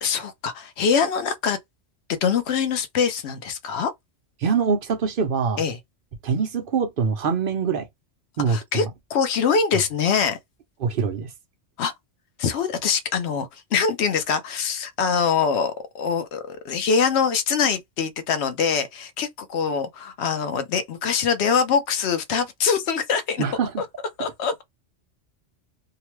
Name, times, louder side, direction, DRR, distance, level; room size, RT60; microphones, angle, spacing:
voice 1, 0.0-1.6 2.1-3.9 5.6-5.8 8.5-8.8 9.1-10.4 11.8-11.9 12.4-23.9 24.2-24.6, left 6 dB, 65° left, 0.9 m, -24 dB
voice 2, 4.4-5.6 6.2-7.9 8.4-8.9 10.8-11.3 23.4-23.7 24.2-24.3, right 5 dB, 55° right, 0.7 m, -24 dB
2.8 x 2.2 x 3.0 m
omnidirectional pair, 1.2 m